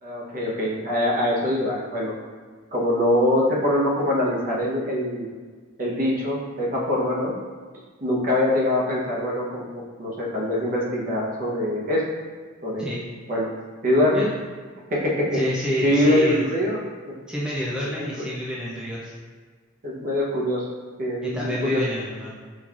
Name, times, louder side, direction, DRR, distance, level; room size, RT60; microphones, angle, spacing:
voice 1, 0.0-2.1 2.7-5.3 5.8-7.3 8.0-12.0 12.6-12.9 13.3-13.5 13.8-14.3 14.9-15.4 15.8-16.8 17.8-18.3 19.8-20.7 21.0-21.8, left 1 dB, 40° right, -4 dB, 0.8 m, -23 dB
voice 2, 15.3-16.4 17.3-19.1 21.2-22.3, equal, 5° right, -7 dB, 0.4 m, -28 dB
5.3 x 3.1 x 2.4 m, 1.6 s
head